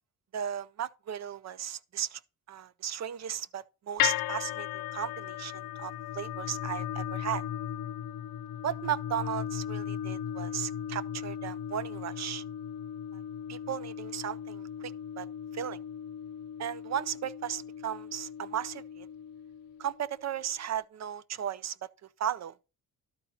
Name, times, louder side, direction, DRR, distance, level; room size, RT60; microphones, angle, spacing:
voice 1, 0.3-2.2 2.5-7.4 8.6-12.4 13.5-15.3 15.5-15.8 16.6-19.1 19.8-21.8 22.2-22.6, right 9 dB, 50° right, 0.5 m, -36 dB
sound 1, 4.0-20.2, left 10 dB, 70° left, 0.5 m, -37 dB
12.0 x 4.2 x 4.1 m
cardioid pair, 95°, 36 cm